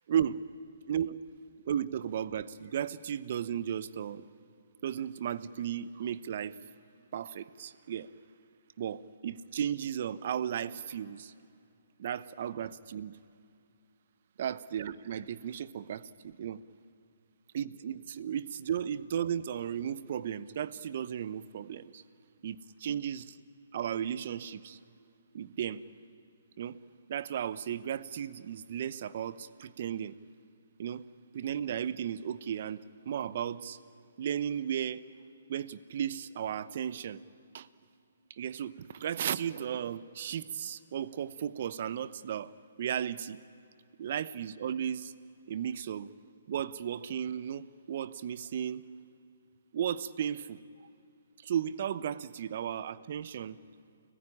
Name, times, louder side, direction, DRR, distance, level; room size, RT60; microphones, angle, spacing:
voice 1, 0.1-0.4 0.9-1.2 1.6-4.3 4.8-6.6 7.1-8.1 8.8-11.3 12.0-13.2 14.4-16.6 17.5-22.0 22.4-23.4 23.7-24.8 25.3-25.8 26.6-26.8 27.1-30.2 30.8-31.0 31.3-33.8 34.2-35.0 35.5-37.2 37.5-37.7 38.3-42.5 42.8-43.4 44.0-45.1 45.5-46.1 46.5-48.8 49.7-50.6 51.4-53.6, right 9 dB, 50° right, 17 dB, 0.9 m, -35 dB
29.5 x 15.0 x 10.0 m, 2.5 s
hypercardioid pair, 140°, 0 cm